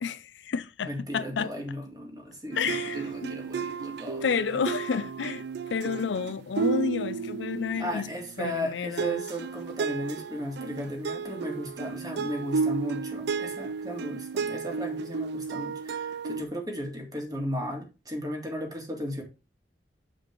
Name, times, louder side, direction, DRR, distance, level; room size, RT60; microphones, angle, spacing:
voice 1, 0.0-1.5 2.5-3.3 4.2-8.1 8.4-9.2, left 6 dB, 80° left, 0.5 m, -31 dB
voice 2, 0.9-4.2 7.8-19.2, equal, 20° right, 2.1 m, -35 dB
sound 1, 2.5-8.6 9.0-16.4, right 5 dB, 65° right, 0.4 m, -33 dB
7.9 x 5.1 x 4.4 m
head